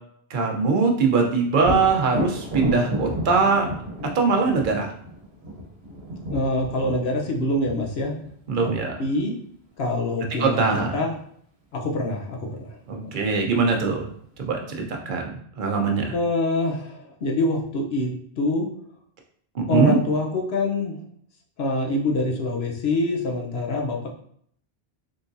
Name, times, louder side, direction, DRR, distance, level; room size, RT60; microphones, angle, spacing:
voice 1, 0.3-3.7 4.1-4.9 8.5-9.0 10.4-11.0 12.9-14.1 14.4-16.1 19.5-20.0, right 4 dB, 55° right, 1 dB, 0.9 m, -22 dB
Thunder, 1.6-9.3 12.9-13.0 13.5-14.4, equal, 80° right, 1.2 m, -32 dB
voice 2, 6.3-8.2 8.6-8.7 9.0-9.3 9.8-11.1 11.7-12.7 13.0-13.1 16.1-18.1 18.4-18.7 19.7-20.9 21.6-24.1, left 2 dB, 80° left, 0 dB, 1.0 m, -25 dB
3.8 x 3.5 x 2.6 m, 0.64 s
omnidirectional pair, 1.0 m